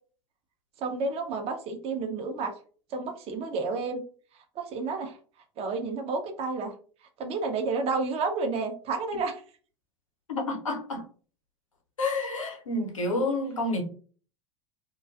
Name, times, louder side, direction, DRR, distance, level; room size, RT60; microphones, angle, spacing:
voice 1, 0.8-2.5 2.9-4.0 4.6-5.2 5.6-6.7 7.2-9.4, right 4 dB, 40° right, 0.6 m, -30 dB
voice 2, 10.3-11.0 12.0-13.8, left 2 dB, 85° left, 0.7 m, -29 dB
2.4 x 2.2 x 2.4 m
hypercardioid pair, 85°, 16 cm